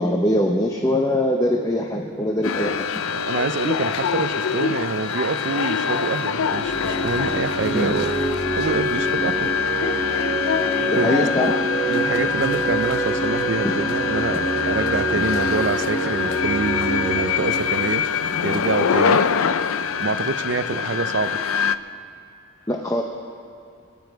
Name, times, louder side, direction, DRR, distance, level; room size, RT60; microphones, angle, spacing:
voice 1, 0.0-2.8 7.7-7.9 10.9-11.5 13.6-13.7 15.1-15.2 22.7-23.0, left 1 dB, 15° left, 2 dB, 0.7 m, -22 dB
sound 1, 2.4-21.8, left 6 dB, 85° left, 0.5 m, -24 dB
voice 2, 3.1-8.1 8.5-9.5 11.0-11.5 11.9-18.0 18.4-19.2 20.0-21.4, right 4 dB, 55° right, 12 dB, 0.5 m, -26 dB
sound 2, 6.4-19.0, right 2 dB, 35° left, 4.2 m, -27 dB
26.0 x 9.5 x 4.6 m, 2.4 s
head